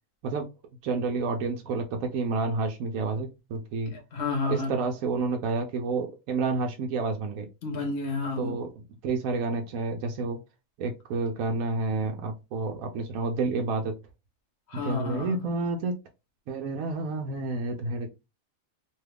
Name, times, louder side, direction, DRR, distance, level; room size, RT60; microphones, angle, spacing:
voice 1, 0.8-3.9 4.5-7.5 8.4-8.7 9.0-10.4 10.8-13.9 14.7-16.0 16.5-18.1, right 3 dB, 70° right, 0.9 m, -29 dB
voice 2, 3.9-4.7 7.6-8.6 14.7-15.5, left 3 dB, 50° left, 1.0 m, -31 dB
2.8 x 2.3 x 3.3 m
omnidirectional pair, 1.6 m